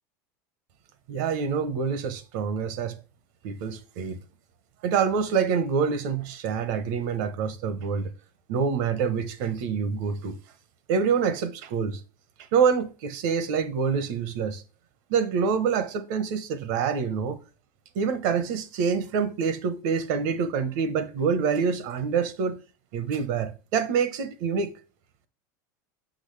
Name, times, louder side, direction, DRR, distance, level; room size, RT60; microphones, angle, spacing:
voice 1, 1.1-3.0 3.4-4.2 4.8-8.1 8.5-10.3 10.9-12.0 12.5-14.6 15.1-17.4 17.9-22.6 22.9-24.7, right 6 dB, 65° right, 1.1 m, -26 dB
6.4 x 5.9 x 3.3 m
supercardioid pair, 145°, 10 cm